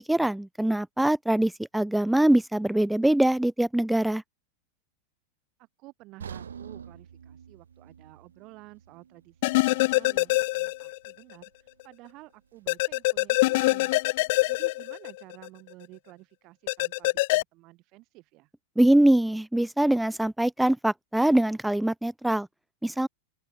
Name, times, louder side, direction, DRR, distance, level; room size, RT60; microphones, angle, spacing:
voice 1, 0.1-4.2 18.8-22.5 22.8-23.1, right 1 dB, 5° right, 0.5 m, -23 dB
voice 2, 5.6-14.0 14.5-18.5, right 21 dB, 40° right, 6.2 m, -51 dB
sound 1, 6.2-10.3 10.6-10.8 11.4-11.5, right 7 dB, 70° right, 6.7 m, -46 dB
sound 2, 9.4-11.1 11.4-11.5 12.7-15.5 16.7-17.4, left 21 dB, 50° left, 1.2 m, -24 dB
open air
figure-of-eight pair, 90°, 0 cm